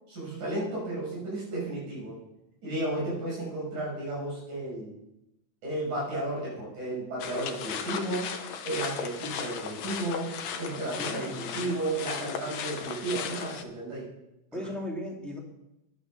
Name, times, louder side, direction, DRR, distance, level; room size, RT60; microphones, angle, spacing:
voice 1, 0.1-2.2 2.6-4.9 5.6-8.3 8.6-14.1, right 1 dB, 80° right, -5 dB, 7.8 m, -33 dB
sound 1, 7.2-13.6, left 7 dB, 70° left, 1.9 m, -36 dB
voice 2, 10.7-11.5 14.5-15.4, left 1 dB, ahead, -2 dB, 2.1 m, -37 dB
10.5 x 9.8 x 6.2 m, 0.87 s
omnidirectional pair, 3.4 m